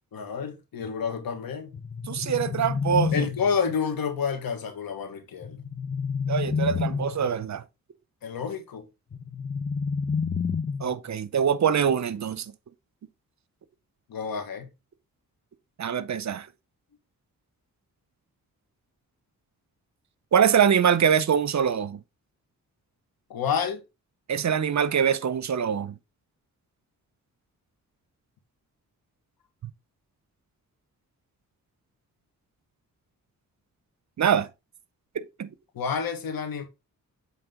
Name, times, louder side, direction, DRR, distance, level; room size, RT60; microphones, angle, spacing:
voice 1, 0.1-1.7 3.1-5.6 8.2-8.9 14.1-14.7 23.3-23.8 35.7-36.6, left 6 dB, 75° left, 1.5 m, -29 dB
sound 1, 1.7-3.7 5.4-7.3 9.1-11.1, left 5 dB, 25° left, 0.8 m, -29 dB
voice 2, 2.1-3.2 6.3-7.6 10.8-12.5 15.8-16.5 20.3-22.0 24.3-25.9 34.2-34.5 35.1-35.5, right 8 dB, 50° right, 0.7 m, -24 dB
7.9 x 3.3 x 3.7 m
cardioid pair, 55°, 35 cm